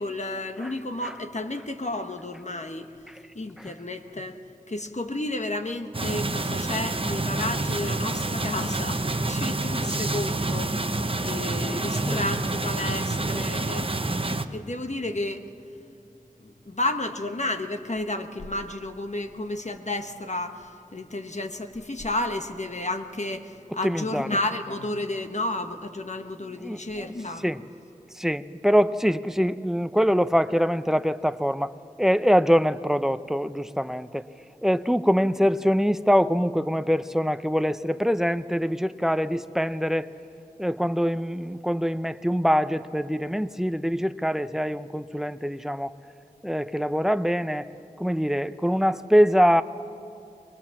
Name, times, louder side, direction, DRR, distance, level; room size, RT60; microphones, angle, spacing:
voice 1, 0.0-2.9 3.3-4.4 4.7-10.8 11.2-14.2 14.5-15.5 16.4-27.4, left 2 dB, 55° left, 6 dB, 1.3 m, -32 dB
sound 1, 5.9-14.5, right 2 dB, 40° right, 0.9 m, -28 dB
voice 2, 11.5-12.3 23.8-24.4 26.6-26.8 27.4-27.6 28.1-31.7 32.0-34.2 34.6-40.1 40.6-45.9 46.4-47.7 48.0-49.6, equal, 5° right, 13 dB, 0.6 m, -24 dB
23.0 x 21.0 x 7.2 m, 2.5 s
wide cardioid pair, 55°, 15 cm